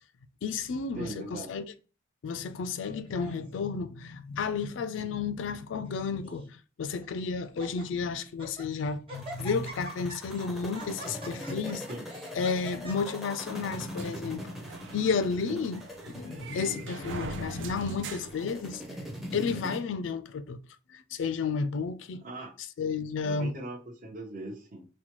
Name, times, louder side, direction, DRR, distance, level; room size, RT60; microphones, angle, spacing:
voice 1, 0.4-1.6 2.2-11.9 12.4-14.5 14.9-15.8 16.2-19.0 19.3-20.6 20.9-22.2 22.8-23.5, left 5 dB, 75° left, 0.4 m, -32 dB
voice 2, 1.0-1.5 11.9-12.0 15.5-15.6 22.1-22.5 23.2-24.9, right 2 dB, 45° right, 0.8 m, -40 dB
Laughter, 2.8-3.6 4.3-4.7 5.0-5.1 5.8-6.5 7.0-7.1 7.4-7.8 8.3-8.7 9.1-13.9, right 1 dB, 30° right, 1.3 m, -45 dB
sound 1, 9.1-19.8, equal, ahead, 0.5 m, -42 dB
sound 2, 13.9-19.2, right 4 dB, 75° right, 0.5 m, -42 dB
4.1 x 2.2 x 2.9 m
head